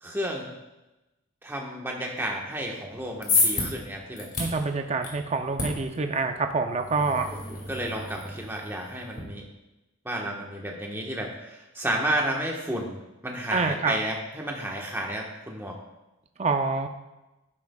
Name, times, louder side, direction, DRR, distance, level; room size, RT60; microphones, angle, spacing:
voice 1, 0.0-0.5 1.4-4.3 7.5-9.4 10.0-15.8, right 1 dB, 10° right, -1 dB, 1.2 m, -32 dB
sound 1, 2.9-9.2, left 3 dB, 40° left, 2.3 m, -31 dB
voice 2, 4.4-7.3 13.5-14.0 16.4-16.9, right 4 dB, 30° right, 5 dB, 0.4 m, -26 dB
12.0 x 9.7 x 2.3 m, 1.0 s
head